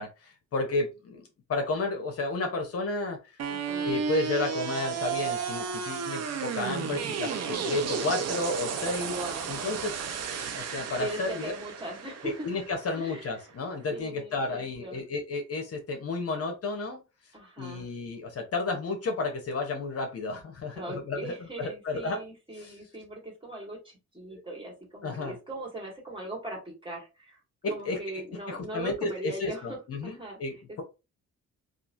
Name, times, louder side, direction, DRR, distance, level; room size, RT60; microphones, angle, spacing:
voice 1, 0.0-3.4 3.8-9.2 9.5-9.9 10.6-11.5 12.2-17.0 17.6-21.3 21.6-22.2 22.6-22.7 24.3-24.4 25.0-25.4 27.6-28.2 28.5-30.8, left 3 dB, 50° left, 3 dB, 0.9 m, -32 dB
sound 1, 3.4-13.4, right 6 dB, 55° right, 0.7 m, -33 dB
voice 2, 3.5-3.9 7.3-7.8 9.1-9.5 11.0-12.5 13.0-13.4 13.9-15.0 17.3-17.9 20.7-27.4 27.7-30.4, right 1 dB, 15° right, -2 dB, 1.6 m, -40 dB
3.0 x 2.4 x 2.5 m, 0.28 s
cardioid pair, 90°, 30 cm